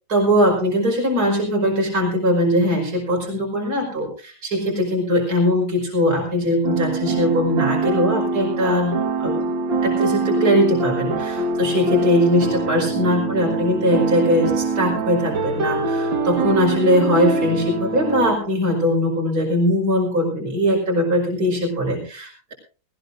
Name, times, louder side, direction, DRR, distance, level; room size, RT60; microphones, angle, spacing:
voice 1, 0.1-9.0 9.2-22.5, equal, 50° right, -1 dB, 5.6 m, -21 dB
sound 1, 6.6-18.4, right 3 dB, 80° right, 2.4 m, -23 dB
20.0 x 18.5 x 2.6 m, 0.35 s
omnidirectional pair, 2.1 m